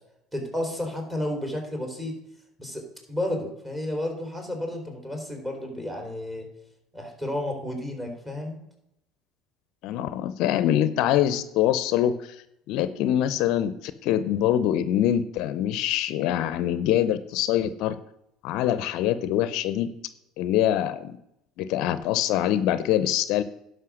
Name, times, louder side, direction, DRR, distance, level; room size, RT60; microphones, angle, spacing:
voice 1, 0.3-2.1 2.6-2.8 3.1-6.5 6.9-8.6, left 1 dB, 15° right, 1 dB, 3.9 m, -31 dB
voice 2, 9.8-12.4 12.7-17.9 18.4-19.9 20.4-21.1 21.6-23.4, left 11 dB, 65° left, 14 dB, 0.6 m, -24 dB
11.0 x 5.5 x 6.3 m, 0.81 s
hypercardioid pair, 80°, 0 cm